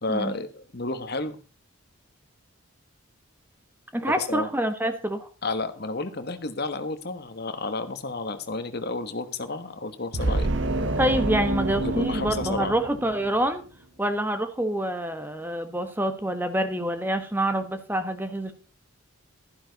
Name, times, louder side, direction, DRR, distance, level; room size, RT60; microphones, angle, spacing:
voice 1, 0.0-1.4 4.1-4.5 5.4-10.5 11.8-12.7, left 3 dB, 50° left, 9 dB, 1.2 m, -31 dB
voice 2, 3.9-5.3 11.0-13.6 14.0-18.5, right 1 dB, 10° right, 9 dB, 1.1 m, -26 dB
sound 1, 10.1-13.6, right 2 dB, 55° right, 1.0 m, -27 dB
12.0 x 11.0 x 4.0 m, 0.35 s
head